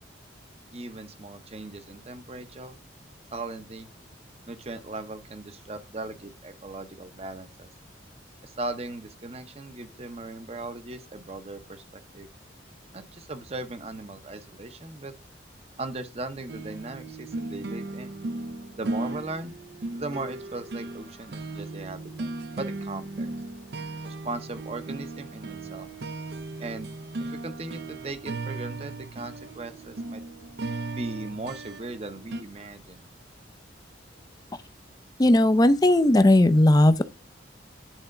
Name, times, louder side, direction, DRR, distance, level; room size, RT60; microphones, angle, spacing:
voice 1, 0.7-2.7 3.3-3.9 4.5-7.7 8.4-11.8 12.1-12.3 12.9-15.1 15.8-18.1 18.8-19.5 19.9-23.3 24.0-25.9 26.6-26.9 27.2-30.2 30.9-33.0, right 2 dB, 30° right, 0.8 m, -38 dB
sound 1, 16.5-32.4, right 2 dB, 55° right, 0.5 m, -36 dB
voice 2, 35.2-37.0, left 1 dB, 20° left, 0.5 m, -17 dB
9.1 x 4.3 x 3.7 m
head